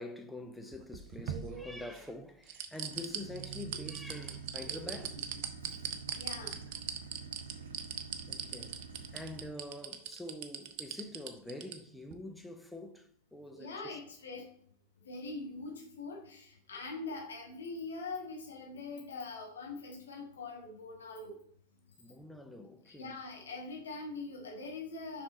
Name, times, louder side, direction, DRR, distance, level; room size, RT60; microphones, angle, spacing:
voice 1, 0.0-5.2 8.3-8.8 9.1-14.0 22.0-23.1, left 1 dB, 5° left, 0.7 m, -46 dB
sound 1, 0.7-2.0 2.5-11.8 12.1-12.2, right 9 dB, 45° right, 0.7 m, -39 dB
sound 2, 2.9-9.5, right 6 dB, 75° right, 1.0 m, -47 dB
voice 2, 6.1-6.6 13.5-14.5 15.0-21.4 22.8-25.2, left 3 dB, 70° left, 1.7 m, -43 dB
6.1 x 5.3 x 4.0 m
figure-of-eight pair, 90°, 0 cm